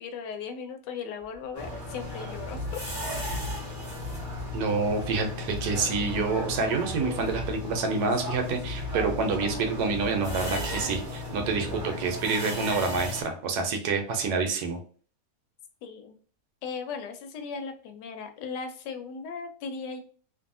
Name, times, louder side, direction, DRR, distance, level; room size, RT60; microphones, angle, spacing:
voice 1, 0.0-3.5 15.8-16.2 16.6-20.0, left 5 dB, 80° left, 6 dB, 1.2 m, -38 dB
sound 1, 1.2-11.8, left 1 dB, 55° left, 0.7 m, -40 dB
sound 2, 1.5-13.2, left 2 dB, 15° right, 0.7 m, -36 dB
voice 2, 4.5-14.8, right 4 dB, 70° right, 5 dB, 1.1 m, -28 dB
2.6 x 2.6 x 2.5 m, 0.44 s
omnidirectional pair, 1.8 m